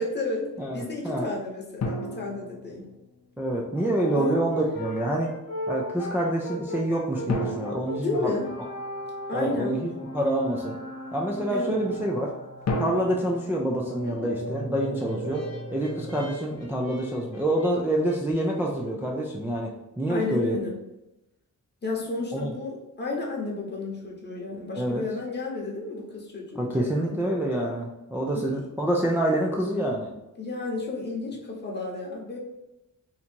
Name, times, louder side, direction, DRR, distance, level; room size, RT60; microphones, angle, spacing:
voice 1, 0.0-0.5 0.7-2.9 4.2-4.4 8.0-8.5 9.3-9.7 11.5-11.8 14.0-14.3 20.1-20.7 21.8-27.2 28.3-28.7 30.4-32.4, left 3 dB, 35° left, -2 dB, 0.9 m, -32 dB
voice 2, 0.6-1.3 3.4-5.3 5.7-8.2 9.3-10.8 11.1-12.3 12.8-15.4 15.7-20.6 22.3-22.5 24.8-25.0 26.6-30.1, right 1 dB, 5° right, -2 dB, 0.4 m, -27 dB
sound 1, 1.8-3.4 7.3-9.2 12.6-14.9, left 1 dB, 55° left, 0.6 m, -34 dB
Brass instrument, 3.7-12.1 14.6-18.2, equal, 70° left, 1.0 m, -38 dB
sound 2, 8.2-16.3, right 1 dB, 70° right, 0.9 m, -41 dB
2.8 x 2.6 x 4.3 m, 0.94 s
wide cardioid pair, 155°, 32 cm